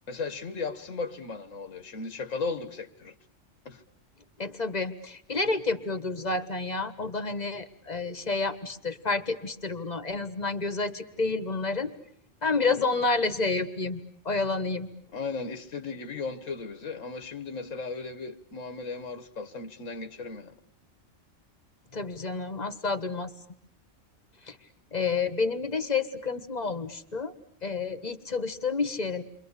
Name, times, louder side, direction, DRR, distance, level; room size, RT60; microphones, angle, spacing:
voice 1, 0.1-3.2 3.7-3.8 15.1-20.5, left 4 dB, 85° left, 1.8 m, -36 dB
voice 2, 4.4-11.9 12.4-14.0 14.2-14.9 21.9-23.3 24.5-24.6 24.9-27.3 27.6-29.2, left 4 dB, 35° left, 1.5 m, -29 dB
29.5 x 24.5 x 8.2 m
omnidirectional pair, 1.3 m